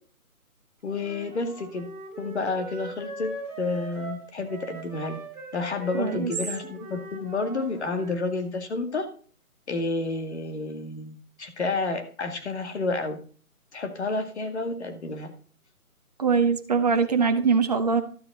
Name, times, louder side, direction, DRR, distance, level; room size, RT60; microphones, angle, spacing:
voice 1, 0.8-1.9 2.2-3.3 3.6-5.2 5.5-9.1 9.7-13.2 13.7-15.3, left 3 dB, 45° left, 6 dB, 2.2 m, -30 dB
Wind instrument woodwind instrument, 0.9-8.2, right 3 dB, 5° right, 2.3 m, -40 dB
voice 2, 5.9-6.3 16.2-18.0, right 5 dB, 25° right, 6 dB, 1.0 m, -22 dB
12.5 x 6.9 x 4.1 m, 0.42 s
figure-of-eight pair, 150°, 45 cm